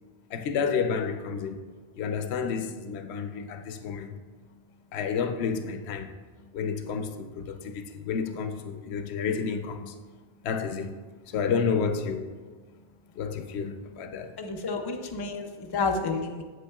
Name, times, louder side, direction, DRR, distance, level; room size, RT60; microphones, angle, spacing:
voice 1, 0.3-1.6 1.9-4.2 4.9-6.1 6.5-9.9 10.4-10.9 11.3-12.3 13.2-14.3, left 6 dB, 90° left, 0.9 m, -30 dB
voice 2, 14.4-16.4, left 4 dB, 30° left, 0.5 m, -30 dB
8.1 x 7.8 x 2.3 m
omnidirectional pair, 1.1 m